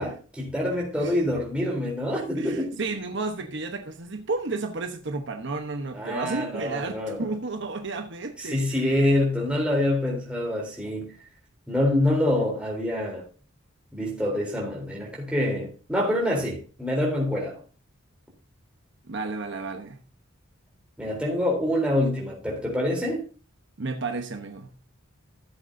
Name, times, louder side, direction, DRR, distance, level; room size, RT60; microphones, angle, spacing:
voice 1, 0.0-2.8 5.9-7.2 8.4-11.1 11.7-13.2 13.9-17.6 21.0-23.2, left 1 dB, 5° right, 3.7 m, -26 dB
voice 2, 2.4-8.8 19.0-20.0 23.8-24.7, right 3 dB, 60° right, 1.1 m, -32 dB
15.0 x 7.7 x 2.7 m
head